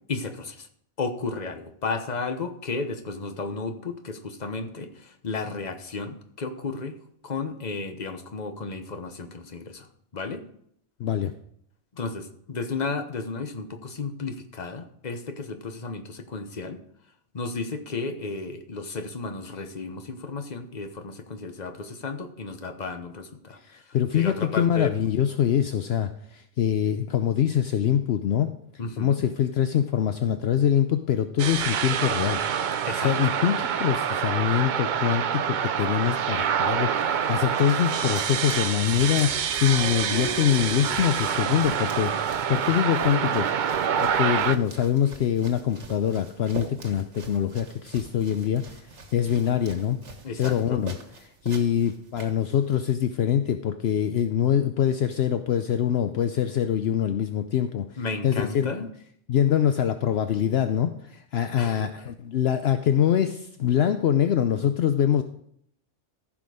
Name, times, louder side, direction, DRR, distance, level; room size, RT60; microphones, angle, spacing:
voice 1, 0.1-0.7 1.0-7.0 7.2-10.4 11.9-16.8 17.3-23.6 23.9-24.9 28.8-29.2 32.9-33.1 50.2-50.8 58.0-58.8 61.6-61.9, left 4 dB, 40° left, 7 dB, 1.1 m, -33 dB
voice 2, 11.0-11.3 23.5-28.5 29.0-32.4 33.0-43.5 44.0-50.0 50.3-51.0 51.2-58.0 58.2-58.9 59.3-65.2, left 9 dB, 70° left, 8 dB, 0.8 m, -24 dB
sound 1, 31.4-44.6, right 8 dB, 55° right, 0.6 m, -26 dB
sound 2, 35.8-52.8, right 3 dB, 85° right, 1.7 m, -45 dB
15.0 x 6.1 x 4.9 m, 0.70 s
omnidirectional pair, 1.2 m